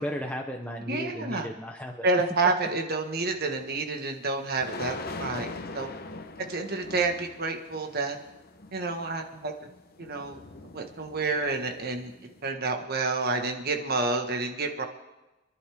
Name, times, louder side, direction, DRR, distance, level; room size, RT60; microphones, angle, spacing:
voice 1, 0.0-2.1, equal, 5° left, 2 dB, 0.7 m, -35 dB
voice 2, 0.9-1.5 2.0-5.5 5.7-5.9 6.5-8.2 8.7-9.5 10.0-10.4 10.7-12.1 12.4-14.8, right 3 dB, 45° right, 4 dB, 1.5 m, -29 dB
sound 1, 3.2-3.3 4.6-12.5, left 3 dB, 45° left, 0.9 m, -42 dB
27.0 x 11.0 x 3.6 m, 1.1 s
head